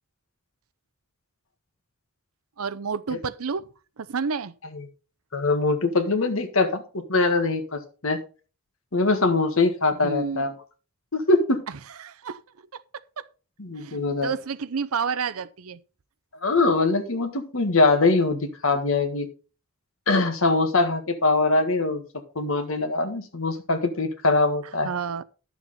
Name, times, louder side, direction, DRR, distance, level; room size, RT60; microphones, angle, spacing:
voice 1, 2.6-3.7 4.1-4.5 10.0-10.4 12.0-12.4 13.8-15.8 24.8-25.2, right 5 dB, 75° right, 0.6 m, -29 dB
voice 2, 5.3-6.8 7.1-8.2 8.9-10.5 11.1-11.6 13.6-14.3 16.4-19.3 20.1-22.0 22.3-24.9, left 3 dB, 65° left, 1.6 m, -22 dB
11.0 x 7.2 x 4.1 m
head